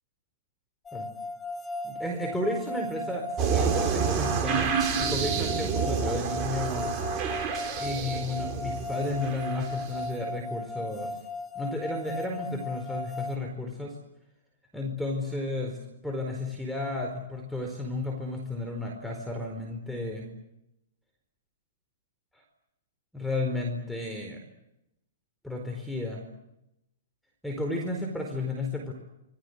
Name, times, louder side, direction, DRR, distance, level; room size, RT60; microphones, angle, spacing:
sound 1, 0.9-13.4, left 1 dB, 20° left, 1.8 m, -36 dB
voice 1, 1.8-6.9 7.8-11.2 11.5-13.9 14.7-15.8 16.0-20.3 23.1-24.4 25.4-26.2 27.4-28.9, left 2 dB, ahead, 2 dB, 4.6 m, -33 dB
sound 2, 3.4-9.9, right 6 dB, 30° right, 5.6 m, -29 dB
27.5 x 21.0 x 8.3 m, 0.86 s
hypercardioid pair, 125°, 0 cm